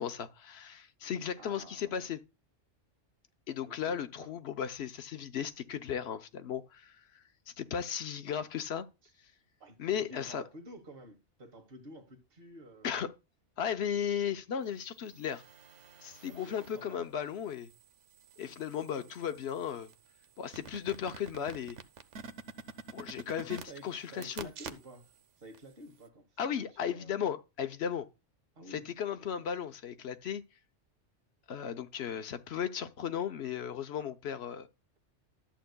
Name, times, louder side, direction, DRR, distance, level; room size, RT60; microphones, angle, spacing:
voice 1, 0.0-2.2 3.5-6.9 7.6-8.9 9.8-10.4 12.8-13.1 13.6-15.4 16.0-17.7 18.4-19.9 20.4-21.8 22.9-24.5 26.4-28.1 28.7-30.4 31.5-34.7, left 8 dB, 65° left, 1.0 m, -36 dB
voice 2, 1.4-1.9 3.6-4.3 9.0-9.1 9.6-13.1 16.2-17.1 18.9-19.4 23.3-25.1 25.4-27.2 28.5-28.9, right 1 dB, 50° right, 1.6 m, -51 dB
sound 1, 15.0-16.9 17.4-25.2 25.5-25.6, right 5 dB, 80° right, 1.1 m, -49 dB
13.0 x 8.0 x 2.2 m
omnidirectional pair, 1.2 m